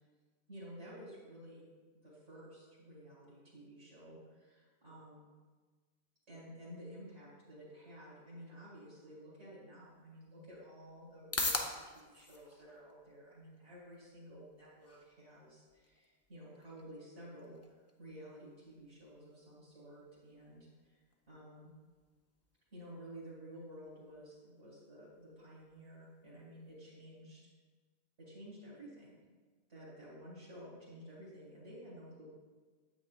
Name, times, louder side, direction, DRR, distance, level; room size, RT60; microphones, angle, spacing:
voice 1, 0.5-1.7 1.9-5.3 6.3-21.0 21.3-21.7 22.7-27.4 28.2-29.2 29.7-32.3, equal, 90° right, -8 dB, 2.4 m, -53 dB
sound 1, 9.9-26.8, left 2 dB, 20° left, 0.5 m, -47 dB
8.8 x 8.1 x 2.4 m, 1.3 s
omnidirectional pair, 1.1 m